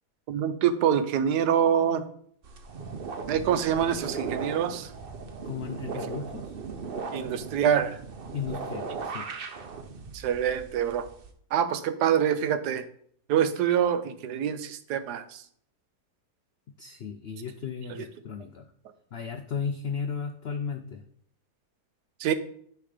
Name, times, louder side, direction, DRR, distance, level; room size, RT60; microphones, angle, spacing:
voice 1, 0.3-2.0 3.3-4.9 7.1-8.0 10.1-11.1 11.5-12.8 13.3-15.4 17.9-18.0 22.2-22.3, right 9 dB, 85° right, 11 dB, 1.2 m, -25 dB
sound 1, 2.4-11.3, right 5 dB, 50° right, 0.7 m, -37 dB
voice 2, 5.4-6.6 8.3-9.3 16.8-18.7 19.1-21.0, left 6 dB, 90° left, 6 dB, 0.5 m, -35 dB
9.9 x 3.5 x 5.0 m, 0.64 s
omnidirectional pair, 1.7 m